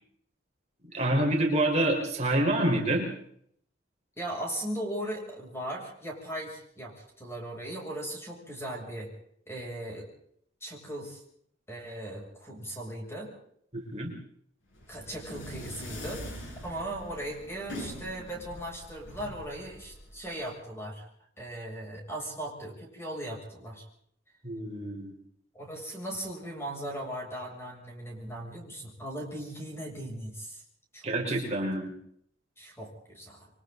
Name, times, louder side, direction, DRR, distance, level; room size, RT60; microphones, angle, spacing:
voice 1, 0.9-3.1 13.7-14.1 24.4-25.1 31.0-31.9, right 1 dB, 35° right, 0 dB, 4.6 m, -27 dB
voice 2, 4.2-9.1 9.5-10.1 10.6-11.2 11.7-13.3 14.9-16.3 16.6-21.1 21.4-23.8 25.5-30.6 30.9-31.4 32.6-33.5, right 1 dB, 15° left, 0 dB, 7.5 m, -38 dB
sound 1, 14.7-20.5, equal, 80° left, 7.7 m, -43 dB
29.5 x 23.5 x 4.0 m, 0.66 s
head